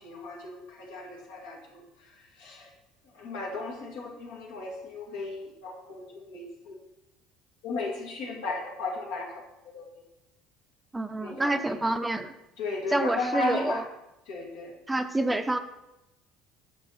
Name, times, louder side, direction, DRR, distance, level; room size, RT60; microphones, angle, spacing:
voice 1, 0.0-2.7 3.1-6.8 7.6-9.3 9.7-9.9 11.2-11.8 12.6-13.8 14.3-14.7, left 3 dB, 80° left, -1 dB, 2.2 m, -35 dB
voice 2, 10.9-12.3 12.9-13.8 14.9-15.6, right 2 dB, 10° right, 9 dB, 0.6 m, -27 dB
8.7 x 6.3 x 4.2 m, 0.91 s
hypercardioid pair, 75°, 0 cm